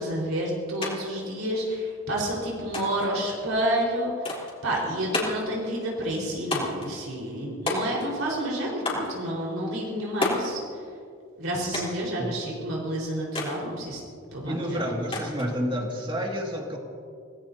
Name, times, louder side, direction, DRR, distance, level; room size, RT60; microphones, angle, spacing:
voice 1, 0.0-10.6 11.4-14.0 14.3-14.8, right 1 dB, 80° right, -3 dB, 4.6 m, -29 dB
sound 1, 0.8-0.9 1.2-2.0 2.7-3.1 4.2-4.6 5.1-5.5 6.5-6.9 7.7-8.2 8.8-9.1 10.2-10.5 11.7-12.0 13.3-13.6 15.1-15.5, left 2 dB, 25° left, 3.6 m, -30 dB
voice 2, 14.4-16.8, equal, 25° right, 0 dB, 2.1 m, -29 dB
26.5 x 18.5 x 2.8 m, 2.2 s
head